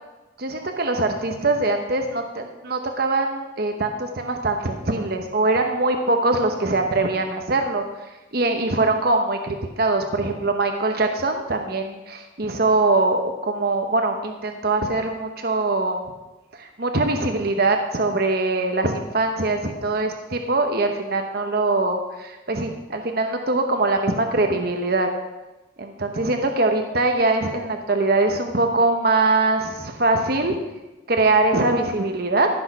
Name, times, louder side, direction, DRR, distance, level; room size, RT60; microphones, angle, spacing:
voice 1, 0.4-7.8 8.3-16.0 16.5-25.1 25.8-30.6 31.1-32.5, right 2 dB, 50° right, 5 dB, 0.9 m, -22 dB
14.5 x 6.3 x 6.0 m, 1.1 s
head